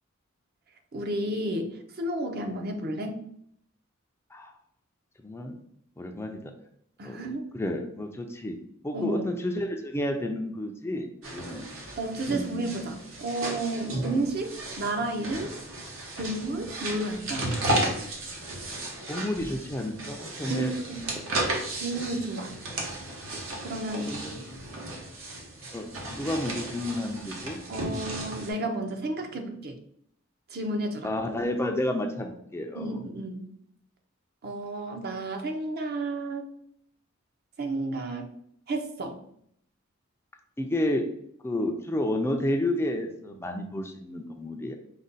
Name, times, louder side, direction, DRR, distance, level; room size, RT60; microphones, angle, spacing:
voice 1, 0.9-3.2 7.0-7.4 8.9-9.3 12.0-15.5 16.2-17.5 20.5-21.0 21.8-22.6 23.6-24.1 27.7-29.8 30.5-31.1 32.7-33.5 34.4-36.4 37.6-38.3 38.7-39.2, right 2 dB, 50° right, 4 dB, 0.6 m, -32 dB
voice 2, 5.2-5.6 6.0-6.5 7.0-7.2 7.5-8.6 8.8-11.6 12.3-12.5 19.1-20.7 21.1-21.2 24.1-24.4 25.7-27.6 31.0-33.0 40.6-41.1 41.4-44.7, left 1 dB, 10° left, 4 dB, 0.4 m, -31 dB
sound 1, 11.2-28.5, right 1 dB, 80° right, 1.1 m, -34 dB
5.0 x 2.2 x 4.0 m, 0.69 s
head